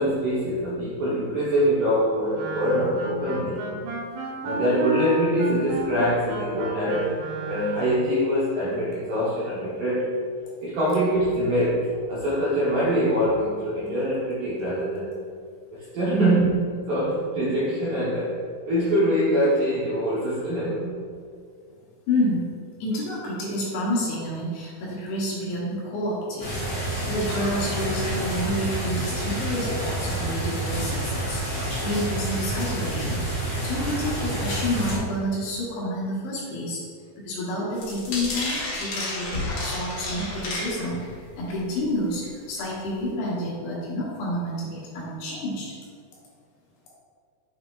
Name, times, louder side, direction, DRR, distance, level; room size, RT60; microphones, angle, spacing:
voice 1, 0.0-3.7 4.4-7.2 7.5-10.2 10.6-15.1 15.9-18.4 18.7-21.1, equal, 70° right, -8 dB, 2.0 m, -24 dB
Wind instrument woodwind instrument, 2.3-8.1, right 2 dB, 90° right, 1.8 m, -31 dB
voice 2, 22.1-22.5 22.8-26.5 27.0-36.8 37.3-41.0 41.4-45.7, left 1 dB, 70° left, -6 dB, 2.8 m, -29 dB
sound 1, 26.4-35.0, right 1 dB, 50° left, 2.1 m, -28 dB
sound 2, 37.8-41.1 41.5-41.8 42.2-42.3 42.6-42.7, left 2 dB, 90° left, 1.2 m, -31 dB
7.9 x 5.8 x 2.4 m, 2.2 s
omnidirectional pair, 5.1 m